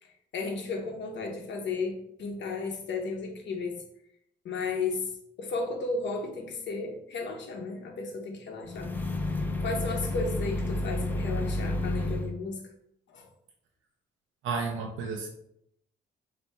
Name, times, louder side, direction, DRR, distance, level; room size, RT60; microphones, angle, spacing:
voice 1, 0.0-3.8 4.4-5.1 5.4-9.0 9.6-12.6 13.1-13.3, left 4 dB, 65° left, 2 dB, 0.9 m, -34 dB
sound 1, 8.6-12.3, left 1 dB, 10° left, 0.5 m, -30 dB
voice 2, 14.4-15.3, right 4 dB, 80° right, 2 dB, 0.6 m, -32 dB
3.3 x 2.9 x 4.2 m, 0.75 s
cardioid pair, 90°, 20 cm